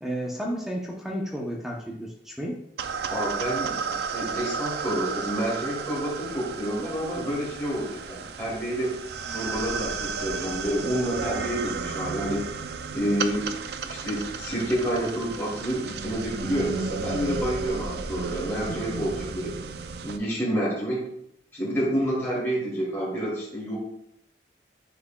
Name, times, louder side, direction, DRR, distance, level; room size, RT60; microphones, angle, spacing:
voice 1, 0.0-2.6, equal, ahead, -1 dB, 0.7 m, -32 dB
sound 1, 2.8-20.2, right 5 dB, 60° right, 0.4 m, -33 dB
voice 2, 3.1-8.9 9.3-12.4 12.9-13.6 13.8-19.5 20.0-21.0 21.5-23.8, equal, 15° left, -8 dB, 2.5 m, -29 dB
9.8 x 4.7 x 2.3 m, 0.76 s
head